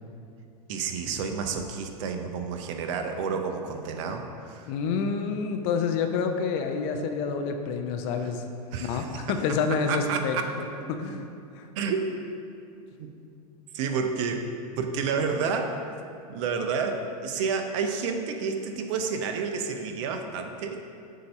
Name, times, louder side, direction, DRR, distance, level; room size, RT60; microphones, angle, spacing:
voice 1, 0.7-4.7 8.7-9.6 9.9-10.4 11.8-12.1 13.0-13.1 13.7-14.5 14.8-15.8 16.3-20.9, right 5 dB, 55° right, 5 dB, 0.6 m, -30 dB
voice 2, 4.7-8.4 8.8-11.3 11.5-11.7, left 5 dB, 45° left, 5 dB, 0.6 m, -28 dB
7.5 x 2.7 x 5.4 m, 2.5 s
hypercardioid pair, 95°, 20 cm